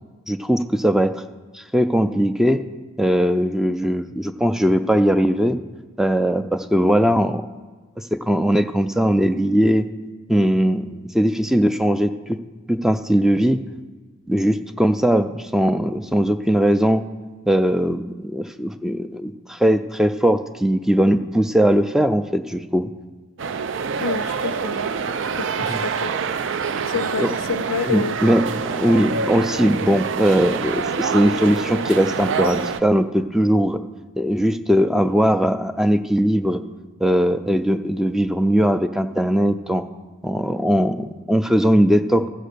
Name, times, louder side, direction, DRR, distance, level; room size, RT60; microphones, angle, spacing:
voice 1, 0.3-1.2 1.5-2.6 3.0-5.6 6.0-7.4 8.0-9.9 10.3-10.9 11.1-12.4 12.7-13.6 14.3-17.0 17.5-22.9 25.6-25.8 27.2-27.3 27.8-33.8 34.2-36.6 37.0-39.9 40.2-42.3, equal, ahead, 9 dB, 0.3 m, -19 dB
sound 1, 23.4-32.8, right 5 dB, 65° right, 0.5 m, -26 dB
voice 2, 24.0-24.8 25.3-26.1 26.9-28.2, left 5 dB, 85° left, 15 dB, 0.4 m, -28 dB
14.5 x 5.4 x 6.7 m, 1.3 s
head